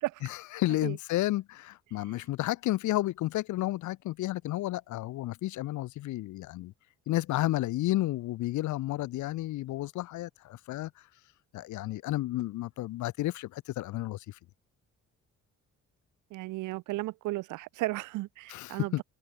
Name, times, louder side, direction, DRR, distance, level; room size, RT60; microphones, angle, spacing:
voice 1, 0.2-6.7 7.1-10.9 11.5-14.4 18.5-19.0, left 16 dB, 75° left, 0.6 m, -32 dB
voice 2, 16.3-19.0, right 19 dB, 85° right, 0.5 m, -34 dB
cardioid pair, 90°, 30 cm